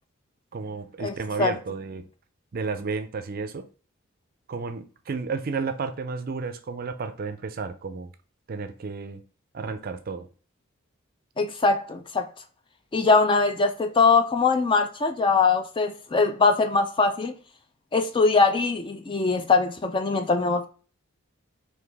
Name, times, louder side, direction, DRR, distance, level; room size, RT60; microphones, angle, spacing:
voice 1, 0.5-2.1 2.5-3.7 4.5-8.1 8.5-9.2 9.5-10.3, right 4 dB, 45° right, 0.4 m, -32 dB
voice 2, 11.4-12.3 12.9-17.3 17.9-20.7, left 4 dB, 25° left, 0.3 m, -22 dB
4.0 x 2.6 x 3.3 m
head